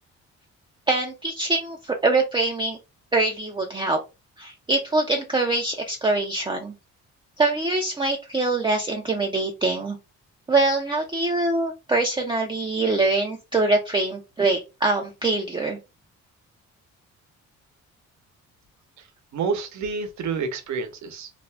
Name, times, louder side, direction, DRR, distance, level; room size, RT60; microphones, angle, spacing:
voice 1, 0.9-2.8 3.1-4.0 4.4-6.7 7.4-10.0 10.5-15.8, right 2 dB, 15° right, 0.5 m, -24 dB
voice 2, 19.3-21.3, right 5 dB, 70° right, 0.8 m, -29 dB
2.5 x 2.2 x 3.3 m
cardioid pair, 90°, 30 cm